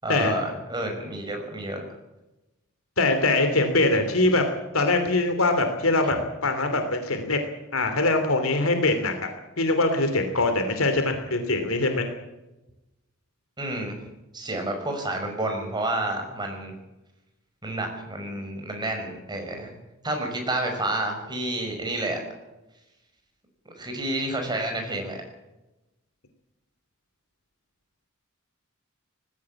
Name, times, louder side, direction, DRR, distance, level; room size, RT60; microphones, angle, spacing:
voice 1, 0.0-1.8 13.6-14.0 14.3-16.7 17.6-19.7 20.0-22.2 23.7-25.2, right 1 dB, 20° right, 3 dB, 5.7 m, -30 dB
voice 2, 3.0-4.4 4.7-7.4 7.7-9.3 9.6-12.1, left 2 dB, 75° left, 6 dB, 3.0 m, -23 dB
19.5 x 16.0 x 8.7 m, 1.0 s
head